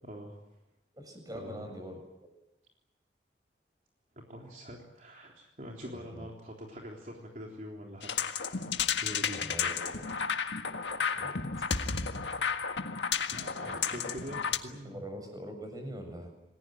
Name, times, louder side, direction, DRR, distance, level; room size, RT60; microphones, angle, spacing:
voice 1, 0.0-0.5 1.3-1.7 4.3-8.1 9.0-9.6 13.2-15.0, equal, 45° right, -1 dB, 3.6 m, -44 dB
voice 2, 0.9-2.0 5.8-6.3 9.3-10.1 11.1-11.3 13.6-13.8 14.8-16.3, equal, 20° right, 4 dB, 7.2 m, -43 dB
sound 1, 8.0-14.6, left 6 dB, 80° left, 1.7 m, -32 dB
28.0 x 20.0 x 9.0 m, 0.92 s
head